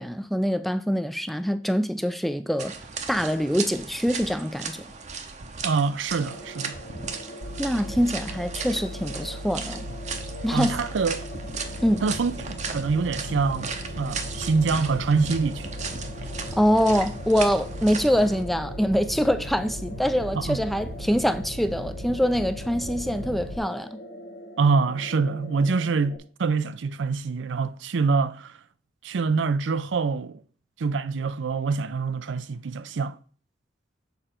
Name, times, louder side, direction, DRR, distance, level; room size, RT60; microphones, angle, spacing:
voice 1, 0.0-2.7 3.1-4.8 7.6-9.8 10.4-10.8 11.8-12.1 16.6-24.0, equal, ahead, 0.4 m, -24 dB
sound 1, 2.6-18.4, right 5 dB, 40° right, 0.7 m, -37 dB
voice 2, 5.6-6.8 10.5-11.3 12.0-15.7 20.3-20.6 24.6-28.5 29.0-30.4 30.8-33.2, right 4 dB, 75° right, 0.4 m, -25 dB
sound 2, 6.2-26.2, equal, 50° left, 1.1 m, -42 dB
sound 3, 7.4-23.6, equal, 55° right, 1.2 m, -38 dB
6.9 x 5.1 x 4.3 m
head